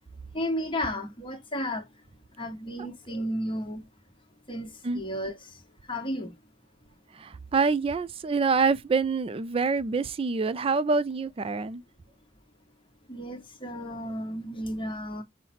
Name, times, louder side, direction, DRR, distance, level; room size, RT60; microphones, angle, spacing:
voice 1, 0.3-1.9 2.4-3.8 4.5-5.5 5.9-6.3 13.1-15.2, equal, 30° left, 1.2 m, -33 dB
voice 2, 7.5-11.8, right 4 dB, 30° right, 0.4 m, -26 dB
5.6 x 2.1 x 4.1 m
head